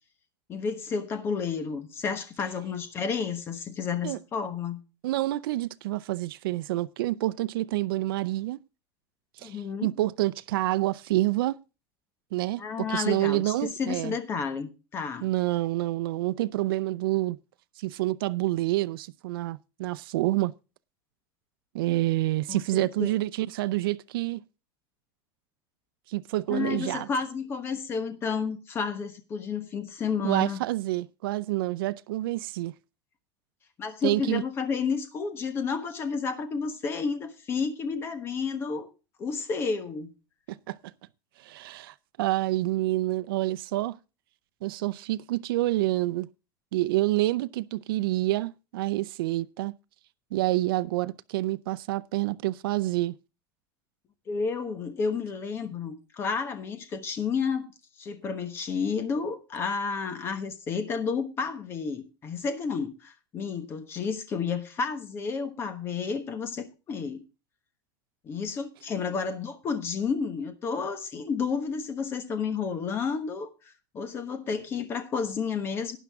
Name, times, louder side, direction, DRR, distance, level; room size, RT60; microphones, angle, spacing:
voice 1, 0.5-4.8 9.4-9.9 12.6-15.3 22.5-23.1 26.5-30.6 33.8-38.9 39.2-40.1 54.3-57.7 58.0-67.2 68.2-73.5 73.9-76.0, left 5 dB, 20° left, 1.2 m, -31 dB
voice 2, 5.0-8.6 9.4-11.6 12.3-14.2 15.2-17.4 17.8-20.5 21.7-24.4 26.1-27.1 30.2-32.7 34.0-34.4 40.5-40.8 41.4-44.0 44.6-46.3 46.7-49.7 50.3-53.1, right 17 dB, 85° right, 0.5 m, -28 dB
12.0 x 10.0 x 3.6 m
supercardioid pair, 175°, 12 cm